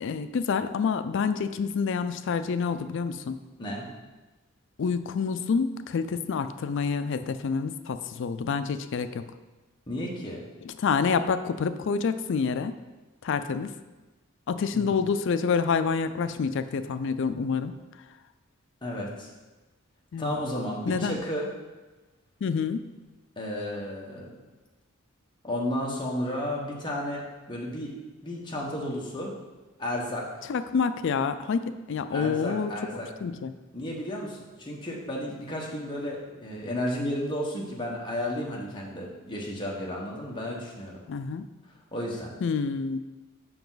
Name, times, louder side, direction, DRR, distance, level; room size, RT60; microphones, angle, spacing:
voice 1, 0.0-3.4 4.8-9.3 10.6-12.8 13.2-13.7 14.5-17.7 20.1-20.4 20.9-21.2 22.4-22.8 30.5-32.7 33.2-33.5 41.1-41.4 42.4-43.0, left 5 dB, 60° left, 11 dB, 0.4 m, -27 dB
voice 2, 9.9-10.4 14.7-14.9 18.8-19.3 20.2-21.5 23.4-24.3 25.4-27.9 28.2-29.3 29.8-30.3 32.1-33.1 33.7-41.0 41.9-42.3, left 1 dB, 20° left, -3 dB, 1.3 m, -33 dB
6.9 x 5.6 x 3.9 m, 1.2 s
head